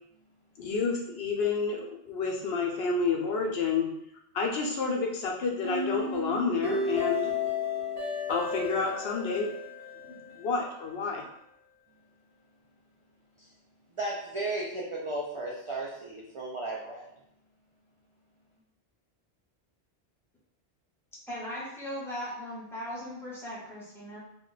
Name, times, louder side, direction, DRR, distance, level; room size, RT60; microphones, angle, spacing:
voice 1, 0.6-3.9 4.3-7.3 8.3-9.5 10.0-11.2, left 4 dB, 70° left, 0 dB, 0.8 m, -29 dB
sound 1, 5.6-10.7, left 4 dB, 30° right, 0.8 m, -33 dB
voice 2, 14.0-17.1, right 2 dB, 55° right, -3 dB, 0.3 m, -34 dB
voice 3, 21.3-24.2, equal, 5° left, -6 dB, 0.8 m, -38 dB
2.4 x 2.1 x 3.8 m, 0.77 s
omnidirectional pair, 1.1 m